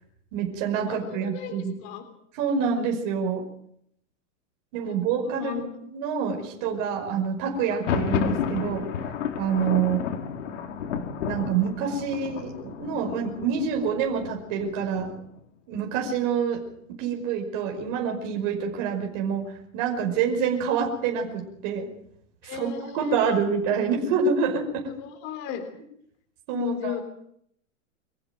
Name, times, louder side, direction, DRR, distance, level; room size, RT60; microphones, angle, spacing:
voice 1, 0.3-1.8 2.3-3.4 4.7-5.5 5.9-8.8 9.4-10.0 11.2-15.1 15.7-16.6 16.9-19.4 19.7-21.9 22.4-24.9 26.5-27.0, right 6 dB, 35° right, 2 dB, 5.4 m, -27 dB
voice 2, 0.9-1.6 1.8-2.0 5.2-5.6 22.4-23.2 25.0-25.6 26.5-27.0, left 8 dB, 30° left, 5 dB, 3.6 m, -34 dB
Thunder, 7.6-15.4, left 7 dB, 65° left, 4.5 m, -32 dB
26.5 x 15.0 x 9.2 m, 0.70 s
supercardioid pair, 175°, 39 cm